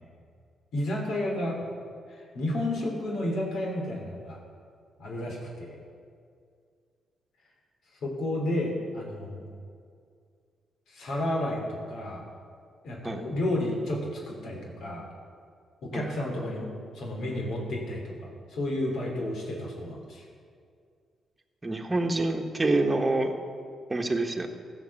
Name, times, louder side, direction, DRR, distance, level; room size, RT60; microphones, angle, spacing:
voice 1, 0.7-1.7 2.1-4.4 5.0-5.8 8.0-9.4 10.9-12.2 12.8-15.0 15.8-16.7 16.9-20.2, left 1 dB, 75° left, -1 dB, 3.0 m, -31 dB
voice 2, 21.6-23.3 23.9-24.5, right 2 dB, 20° right, 4 dB, 1.2 m, -26 dB
15.0 x 6.0 x 7.1 m, 2.2 s
cardioid pair, 85°, 0 cm